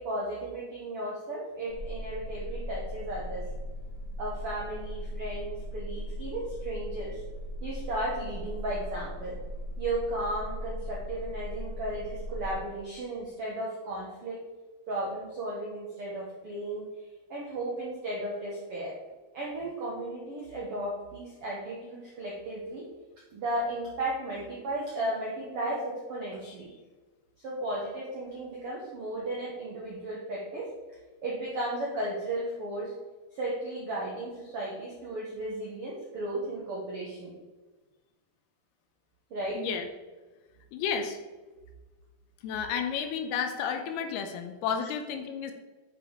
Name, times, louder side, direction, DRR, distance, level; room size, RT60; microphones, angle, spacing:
voice 1, 0.0-3.4 4.2-7.2 7.6-9.4 9.8-14.4 14.9-16.9 17.3-19.0 19.3-22.9 23.3-26.7 27.4-30.7 31.2-32.9 33.3-37.3 39.3-39.7, right 1 dB, 90° right, -4 dB, 1.2 m, -35 dB
sound 1, 1.7-12.5, equal, 50° right, 1.1 m, -38 dB
voice 2, 39.6-39.9 40.7-41.2 42.4-45.5, left 7 dB, 85° left, 6 dB, 2.7 m, -32 dB
10.5 x 5.3 x 3.8 m, 1.3 s
omnidirectional pair, 4.6 m